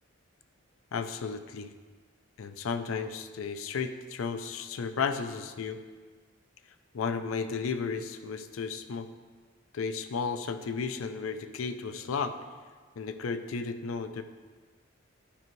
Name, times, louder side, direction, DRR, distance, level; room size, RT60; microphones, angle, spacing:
voice 1, 0.9-1.7 2.4-5.8 6.9-9.1 9.7-12.4 13.0-14.2, left 5 dB, 75° left, 10 dB, 0.4 m, -33 dB
10.5 x 5.2 x 3.1 m, 1.5 s
head